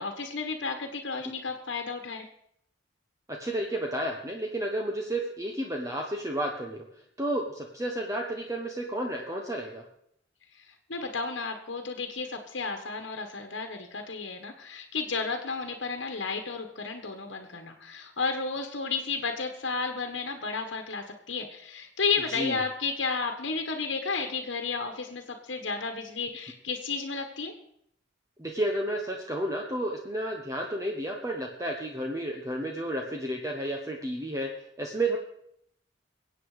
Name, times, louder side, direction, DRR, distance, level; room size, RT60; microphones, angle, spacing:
voice 1, 0.0-2.3 10.5-27.5, left 4 dB, 80° left, 5 dB, 1.4 m, -32 dB
voice 2, 3.3-6.8 7.2-9.8 22.3-22.6 28.4-34.5 34.8-35.2, right 1 dB, 20° right, 1 dB, 1.3 m, -31 dB
22.0 x 8.6 x 5.0 m, 0.72 s
head